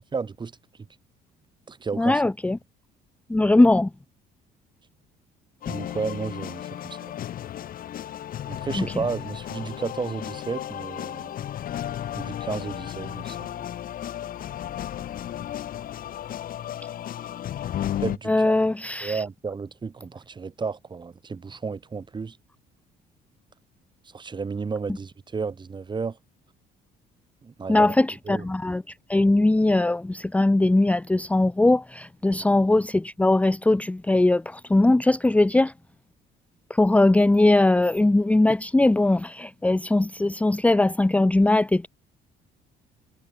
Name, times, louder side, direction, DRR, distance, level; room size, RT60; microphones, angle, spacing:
voice 1, 0.1-0.5 1.7-2.2 5.7-7.1 8.5-11.3 12.2-13.6 18.0-18.6 19.0-22.4 24.1-26.2 27.4-28.0 28.3-28.4 32.4-32.5, right 5 dB, 25° right, 3.3 m, -32 dB
voice 2, 2.0-2.6 3.3-3.9 8.8-9.0 18.3-19.2 27.7-35.7 36.7-41.9, left 2 dB, 10° left, 0.8 m, -20 dB
sound 1, 5.6-18.2, left 11 dB, 60° left, 2.1 m, -34 dB
cardioid pair, 110°, 17 cm